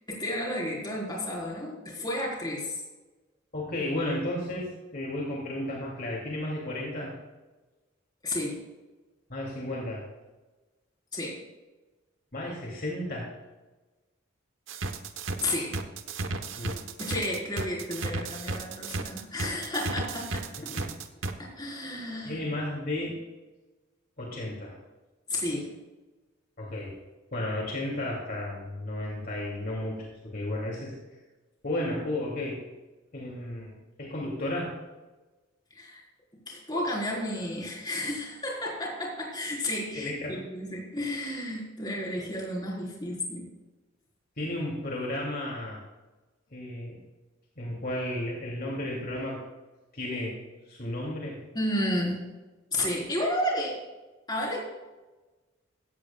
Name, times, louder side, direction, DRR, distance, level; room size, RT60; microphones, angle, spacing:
voice 1, 0.1-2.8 8.2-8.6 11.1-11.4 15.4-15.8 17.0-20.7 21.4-22.4 25.3-25.7 35.7-36.0 36.5-43.5 51.5-52.2 52.7-53.8 54.3-54.6, left 1 dB, 20° left, -3 dB, 4.2 m, -32 dB
voice 2, 3.5-7.1 9.3-10.0 12.3-13.3 16.6-16.8 20.7-20.9 22.2-23.2 24.2-24.8 26.6-26.9 27.3-30.9 31.6-32.6 33.1-34.7 39.9-40.4 44.4-45.8 46.5-47.0 47.6-49.4 49.9-50.4 50.7-51.4, left 1 dB, 50° left, -2 dB, 2.8 m, -33 dB
sound 1, 14.7-21.3, right 3 dB, 80° right, 1.1 m, -33 dB
16.5 x 14.5 x 2.4 m, 1.2 s
head